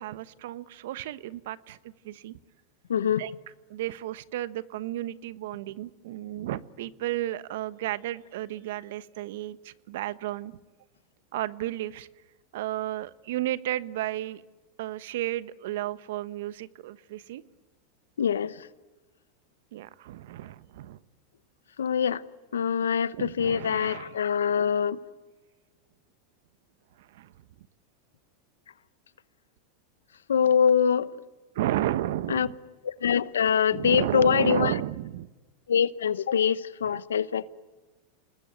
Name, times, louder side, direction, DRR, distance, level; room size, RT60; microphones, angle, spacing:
voice 1, 0.0-1.8 2.0-2.4 3.2-3.3 3.7-10.6 11.3-12.1 12.5-14.4 14.8-17.4 19.7-21.0 23.1-24.2 27.0-27.3 31.5-32.5 33.7-35.3 36.8-37.0, right 14 dB, 70° right, 1.1 m, -33 dB
voice 2, 2.9-3.2 18.2-18.5 21.8-22.2 22.5-25.0 30.3-31.1 32.3-32.5 32.8-34.7 35.7-37.5, left 7 dB, 90° left, 0.9 m, -24 dB
29.0 x 20.0 x 9.3 m
hypercardioid pair, 105°, 0 cm